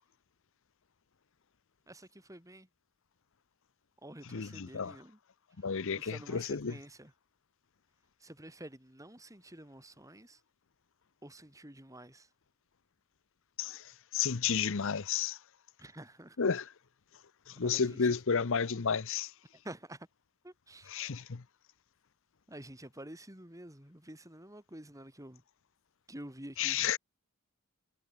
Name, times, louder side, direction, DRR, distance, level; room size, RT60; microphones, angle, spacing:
voice 1, 1.9-2.7 4.0-5.2 5.9-7.1 8.2-10.4 11.2-12.3 15.8-16.4 17.6-18.2 19.6-20.1 20.4-21.0 22.5-25.4 26.1-26.9, right 1 dB, 15° right, 5.7 m, -49 dB
voice 2, 4.3-5.0 5.6-6.7 13.6-15.4 16.4-16.7 17.5-19.3 20.9-21.4 26.6-27.0, left 6 dB, 60° left, 0.7 m, -32 dB
head